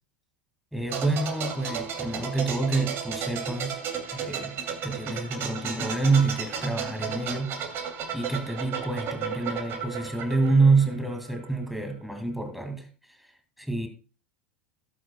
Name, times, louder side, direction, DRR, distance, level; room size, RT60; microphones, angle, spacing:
voice 1, 0.7-3.8 4.1-7.6 8.1-13.3 13.6-13.9, right 3 dB, ahead, 2.1 m, -27 dB
sound 1, 0.9-11.5 11.8-12.0, right 7 dB, 45° right, 2.7 m, -34 dB
17.0 x 9.2 x 2.2 m
hypercardioid pair, 80°, 6 cm